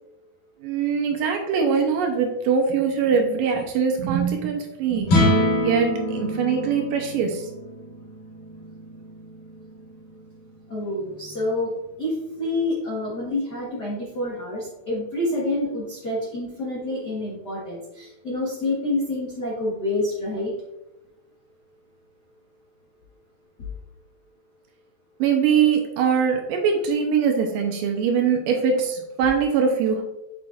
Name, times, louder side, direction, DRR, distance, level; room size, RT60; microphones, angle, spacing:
voice 1, 0.6-5.2 5.6-7.5 25.2-30.0, right 6 dB, 80° right, 3 dB, 2.1 m, -22 dB
sound 1, 5.0-11.4, left 1 dB, 60° left, 3.9 m, -26 dB
voice 2, 10.7-11.7 12.0-20.5, left 2 dB, 80° left, -6 dB, 0.9 m, -27 dB
7.1 x 6.2 x 2.5 m, 0.97 s
omnidirectional pair, 4.4 m